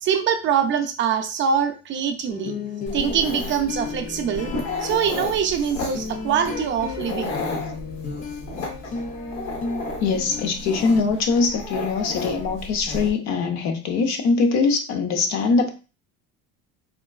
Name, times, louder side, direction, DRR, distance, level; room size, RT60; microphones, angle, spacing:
voice 1, 0.0-2.5 2.9-4.5 4.8-7.4, right 7 dB, 40° right, 7 dB, 0.4 m, -23 dB
sound 1, 2.3-11.0, left 5 dB, 25° left, 0.4 m, -34 dB
Dog, 2.9-13.1, left 2 dB, 80° left, 1.0 m, -33 dB
voice 2, 10.0-15.7, left 4 dB, 60° left, 6 dB, 0.7 m, -22 dB
3.7 x 2.2 x 2.2 m, 0.32 s
supercardioid pair, 115°, 31 cm